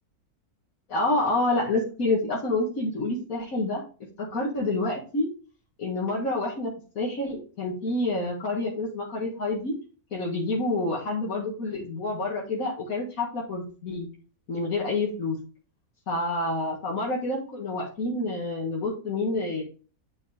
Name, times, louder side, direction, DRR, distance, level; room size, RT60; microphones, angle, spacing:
voice 1, 0.9-3.8 4.2-5.3 5.8-9.7 10.1-14.1 14.5-15.4 16.1-19.6, left 2 dB, 65° left, -4 dB, 2.2 m, -28 dB
9.4 x 5.5 x 3.4 m, 0.37 s
omnidirectional pair, 1.6 m